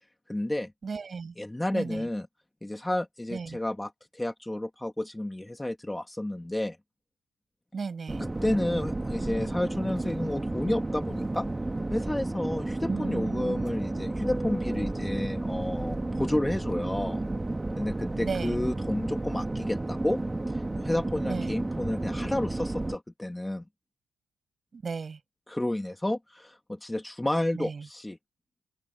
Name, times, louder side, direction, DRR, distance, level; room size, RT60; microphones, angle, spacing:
voice 1, 0.3-0.7 1.4-2.3 2.6-6.8 8.2-11.5 11.9-17.2 17.8-20.2 20.8-23.6 25.5-28.2, left 1 dB, 10° left, 2.4 m, -31 dB
voice 2, 0.8-1.4 1.7-2.1 3.3-3.6 7.7-8.3 12.9-13.7 18.1-18.6 21.2-21.6 24.7-25.2 27.5-27.9, right 5 dB, 35° right, 7.0 m, -35 dB
sound 1, 8.1-23.0, right 2 dB, 15° right, 2.0 m, -32 dB
open air
cardioid pair, 90°, 0 cm